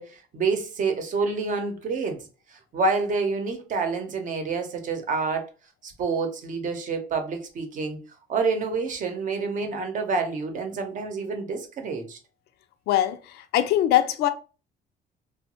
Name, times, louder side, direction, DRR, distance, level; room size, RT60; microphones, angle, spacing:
voice 1, 0.0-2.3 2.5-5.4 5.8-8.0 8.3-12.2, right 4 dB, 50° right, 0.8 m, -28 dB
voice 2, 12.9-14.3, left 12 dB, 75° left, 0.4 m, -22 dB
3.0 x 2.1 x 2.9 m
cardioid pair, 110°, 17 cm